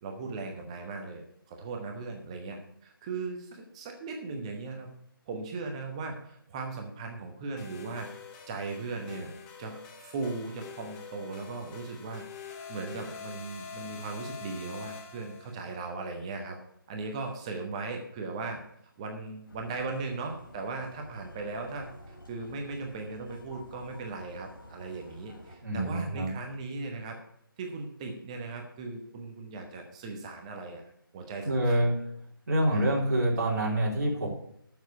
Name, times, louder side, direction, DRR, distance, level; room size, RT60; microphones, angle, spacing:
voice 1, 0.0-4.9 5.3-8.1 8.5-9.3 9.6-16.6 16.9-18.6 19.0-21.9 22.3-27.2 27.6-30.8 31.1-31.9 32.7-32.9, right 3 dB, 15° right, 3 dB, 1.0 m, -38 dB
sound 1, 7.6-15.7, left 6 dB, 5° left, 0.4 m, -46 dB
sound 2, 19.5-25.6, equal, 60° left, 3.1 m, -50 dB
voice 2, 25.6-26.3 31.4-31.9 32.5-34.3, right 1 dB, 45° right, -1 dB, 3.3 m, -26 dB
9.1 x 7.3 x 8.0 m, 0.73 s
figure-of-eight pair, 155°, 12 cm